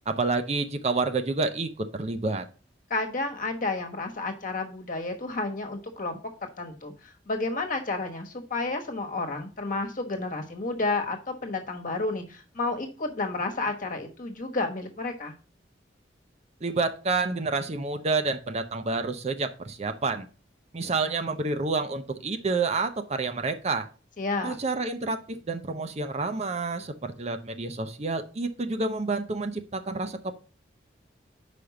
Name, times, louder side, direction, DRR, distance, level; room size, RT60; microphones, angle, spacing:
voice 1, 0.1-2.5 16.6-20.3 20.7-23.9 24.4-30.3, right 3 dB, 35° right, 8 dB, 0.6 m, -29 dB
voice 2, 2.9-15.3 24.2-24.6, left 3 dB, 45° left, 4 dB, 1.3 m, -31 dB
5.3 x 5.0 x 5.8 m, 0.36 s
head